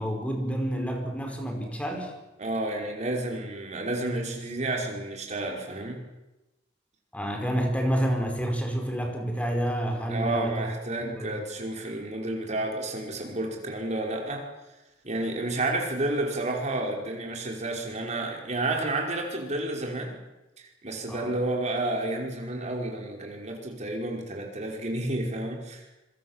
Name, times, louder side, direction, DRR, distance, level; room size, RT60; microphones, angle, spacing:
voice 1, 0.0-2.1 7.1-10.7 11.0-11.4 21.1-21.3, equal, 10° left, 3 dB, 5.3 m, -29 dB
voice 2, 2.4-6.0 10.1-14.4 15.0-20.2 20.6-25.8, right 2 dB, 40° right, 1 dB, 5.3 m, -31 dB
25.5 x 24.0 x 7.5 m, 1.0 s
head